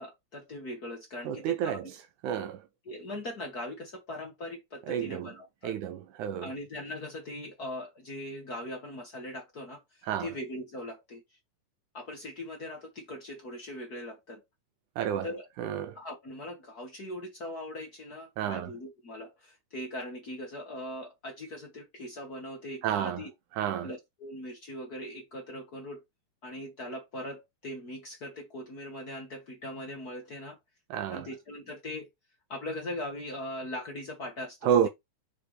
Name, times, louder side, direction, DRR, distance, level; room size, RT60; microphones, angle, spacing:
voice 1, 0.0-1.8 2.8-5.8 6.4-11.2 11.9-14.4 15.2-15.5 15.9-23.3 23.8-26.0 26.4-30.6 31.1-32.1 32.5-34.9, left 1 dB, 45° left, 1.4 m, -40 dB
voice 2, 1.3-1.9 2.2-2.6 4.9-5.3 5.6-6.5 10.1-10.3 15.0-15.3 15.6-16.0 18.4-18.7 22.8-23.2 23.6-23.9 30.9-31.3 34.6-34.9, right 9 dB, 75° right, 2.1 m, -29 dB
6.6 x 5.1 x 3.2 m
omnidirectional pair, 3.7 m